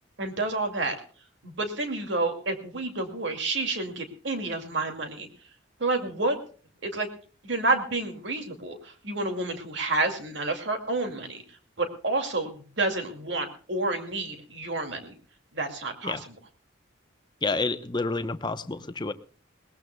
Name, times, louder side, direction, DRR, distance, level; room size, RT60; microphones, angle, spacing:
voice 1, 0.2-1.0 1.4-5.3 5.8-6.4 6.8-7.1 7.4-11.4 11.8-15.1 15.5-16.2, right 2 dB, 60° right, 5 dB, 2.4 m, -29 dB
voice 2, 17.4-19.1, left 3 dB, 20° left, 10 dB, 0.8 m, -29 dB
21.5 x 19.0 x 2.3 m, 0.41 s
head